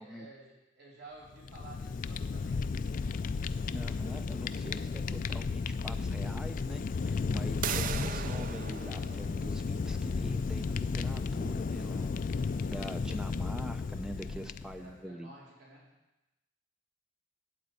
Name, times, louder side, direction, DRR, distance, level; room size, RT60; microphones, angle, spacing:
voice 1, 0.0-2.7 14.1-14.3 14.8-15.9, right 2 dB, 60° right, -5 dB, 3.6 m, -53 dB
Fire, 1.3-14.9, left 4 dB, 40° left, 0.3 m, -34 dB
voice 2, 3.7-15.3, equal, 5° right, 6 dB, 0.7 m, -44 dB
sound 1, 7.6-13.2, right 8 dB, 45° right, 0.4 m, -41 dB
9.2 x 8.3 x 8.1 m, 1.0 s
head